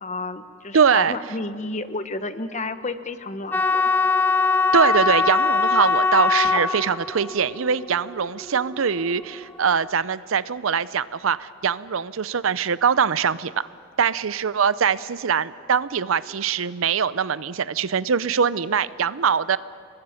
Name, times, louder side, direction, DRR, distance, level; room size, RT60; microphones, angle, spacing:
voice 1, 0.0-3.8, left 3 dB, 35° left, 10 dB, 1.0 m, -31 dB
voice 2, 0.7-1.2 4.7-13.7 14.0-19.6, right 6 dB, 80° right, 17 dB, 0.6 m, -22 dB
sound 1, 3.5-9.7, left 4 dB, 10° left, 0.8 m, -22 dB
29.0 x 21.5 x 5.8 m, 2.4 s
head